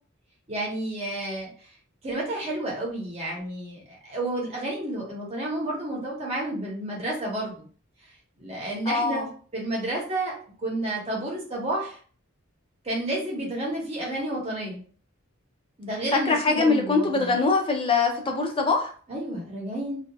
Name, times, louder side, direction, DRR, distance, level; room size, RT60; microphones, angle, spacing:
voice 1, 0.5-1.5 2.0-7.7 8.4-12.0 12.8-14.8 15.8-17.4 19.1-20.0, right 1 dB, 30° right, -4 dB, 0.8 m, -31 dB
voice 2, 8.9-9.3 16.1-18.9, left 4 dB, 25° left, 2 dB, 0.4 m, -23 dB
2.7 x 2.2 x 2.3 m, 0.43 s
head